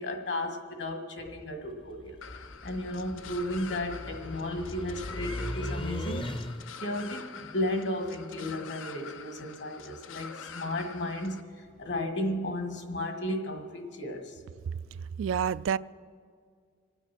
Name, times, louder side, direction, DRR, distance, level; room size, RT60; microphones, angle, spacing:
voice 1, 0.0-6.3 6.8-14.4, left 1 dB, 60° left, 5 dB, 1.8 m, -34 dB
sound 1, 1.2-6.9, left 1 dB, 25° left, 0.6 m, -39 dB
sound 2, 2.2-11.4, left 6 dB, 85° left, 0.7 m, -46 dB
voice 2, 15.2-15.8, right 8 dB, 75° right, 17 dB, 0.3 m, -27 dB
26.5 x 9.1 x 6.0 m, 2.1 s
head